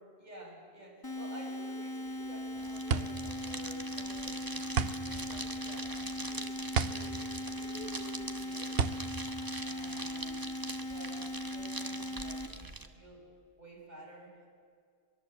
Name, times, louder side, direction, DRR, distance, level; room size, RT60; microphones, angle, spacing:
voice 1, 0.0-6.5 6.8-8.7 9.6-10.5 10.8-13.3 13.6-14.5, right 1 dB, 45° right, -2 dB, 6.9 m, -51 dB
sound 1, 1.0-12.5, left 1 dB, 20° left, 2.1 m, -39 dB
sound 2, 2.1-10.4, right 6 dB, 70° right, 1.0 m, -35 dB
sound 3, 2.5-12.9, right 2 dB, 20° right, 1.3 m, -43 dB
23.5 x 22.5 x 8.1 m, 2.3 s
omnidirectional pair, 1.0 m